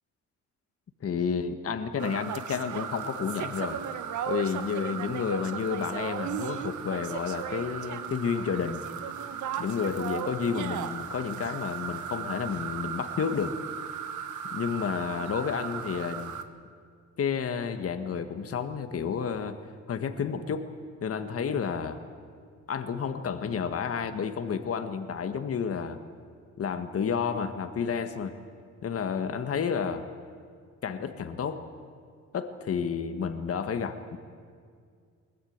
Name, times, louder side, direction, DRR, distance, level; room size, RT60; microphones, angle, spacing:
voice 1, 1.0-3.8 4.3-8.8 9.6-13.6 14.5-16.4 17.2-19.6 19.9-20.7 21.0-22.0 22.7-26.0 26.6-28.4 28.8-30.0 30.8-31.6 32.3-34.2, left 6 dB, 50° left, 8 dB, 1.6 m, -31 dB
sound 1, 2.0-16.4, right 8 dB, 75° right, 1.6 m, -36 dB
21.5 x 19.5 x 8.9 m, 2.1 s
cardioid pair, 90°, 30 cm